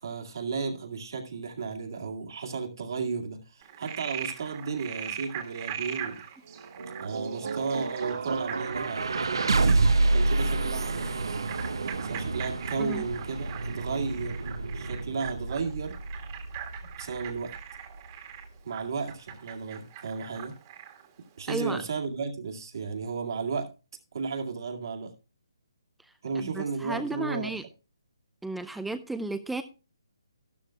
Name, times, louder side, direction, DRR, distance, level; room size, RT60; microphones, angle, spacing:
voice 1, 0.0-6.2 7.0-11.4 12.0-14.5 14.7-16.0 17.0-17.5 18.6-20.5 21.4-23.7 24.1-25.1 26.2-27.6, right 5 dB, 60° right, 2.1 m, -34 dB
Frog, 3.6-21.1, right 10 dB, 30° right, 1.7 m, -41 dB
sound 1, 6.5-18.6, right 3 dB, 75° right, 1.1 m, -29 dB
voice 2, 21.5-21.8 26.4-27.6 28.4-29.6, right 2 dB, 5° right, 0.4 m, -34 dB
13.0 x 12.0 x 2.3 m
hypercardioid pair, 160°, 2 cm